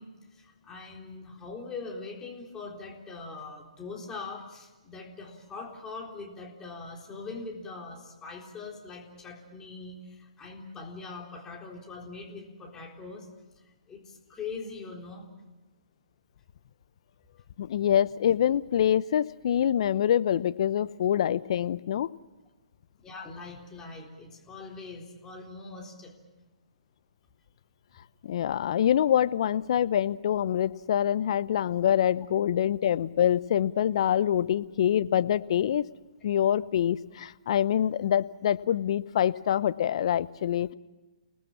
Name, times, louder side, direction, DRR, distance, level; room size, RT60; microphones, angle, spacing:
voice 1, 0.0-13.3 13.6-15.3 23.0-26.2, left 4 dB, 15° left, 0 dB, 3.9 m, -42 dB
voice 2, 17.6-22.1 28.2-35.9 36.2-40.7, left 10 dB, 50° left, 16 dB, 0.8 m, -25 dB
29.5 x 18.5 x 7.4 m, 1.2 s
figure-of-eight pair, 135°, 4 cm